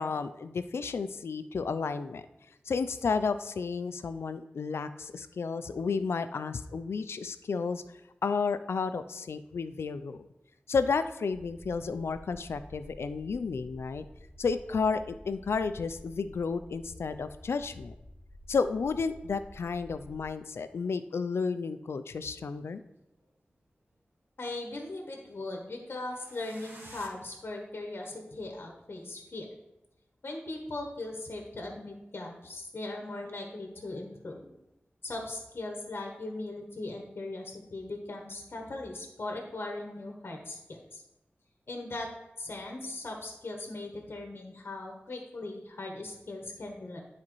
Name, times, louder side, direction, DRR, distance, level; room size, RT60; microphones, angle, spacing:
voice 1, 0.0-2.2 2.7-7.8 8.2-10.3 10.7-14.0 14.4-17.9 18.5-22.8, left 5 dB, 90° left, 11 dB, 0.3 m, -32 dB
sound 1, 11.3-20.3, equal, 20° left, 0.6 m, -51 dB
sound 2, 20.8-20.9 22.2-23.2 26.0-27.1, right 1 dB, 55° right, 1.5 m, -51 dB
voice 2, 24.4-29.5 30.2-34.5 35.0-41.0 41.7-42.1 42.4-47.0, left 2 dB, 65° left, 2 dB, 1.0 m, -39 dB
9.8 x 4.2 x 3.1 m, 0.89 s
wide cardioid pair, 65°, 4 cm